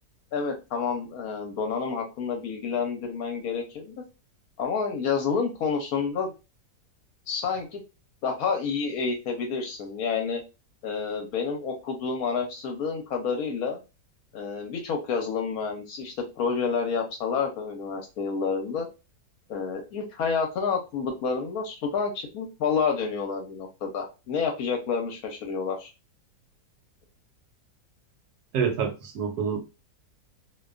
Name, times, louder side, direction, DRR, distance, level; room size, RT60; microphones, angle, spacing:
voice 1, 0.3-3.9 4.6-6.3 7.3-7.8 8.2-10.4 10.8-13.8 14.3-18.9 19.5-25.9, left 5 dB, 70° left, 1.0 m, -29 dB
voice 2, 28.5-29.6, right 6 dB, 75° right, 1.1 m, -27 dB
2.6 x 2.2 x 2.3 m
omnidirectional pair, 1.8 m